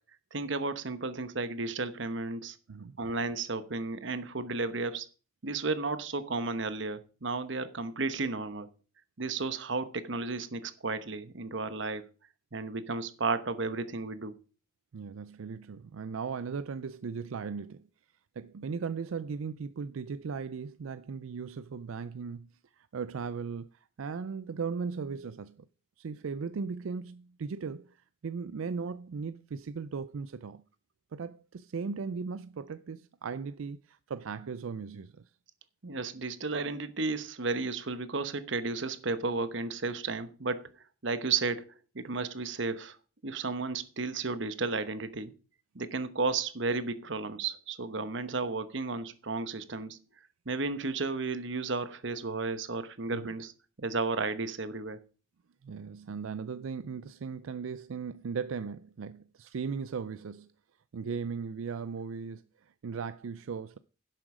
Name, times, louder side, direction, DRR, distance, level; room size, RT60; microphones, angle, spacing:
voice 1, 0.3-2.6 3.0-5.1 5.4-8.7 9.2-12.0 12.5-14.4 35.8-40.7 41.0-43.0 43.2-45.3 45.7-50.0 50.5-53.5 53.8-55.0, right 3 dB, 65° right, 1.0 m, -33 dB
voice 2, 14.9-17.9 18.4-22.5 22.8-25.7 26.0-30.6 31.1-35.2 53.1-53.3 55.6-60.5 60.9-63.8, right 5 dB, 85° right, 0.4 m, -37 dB
11.0 x 7.6 x 4.9 m
head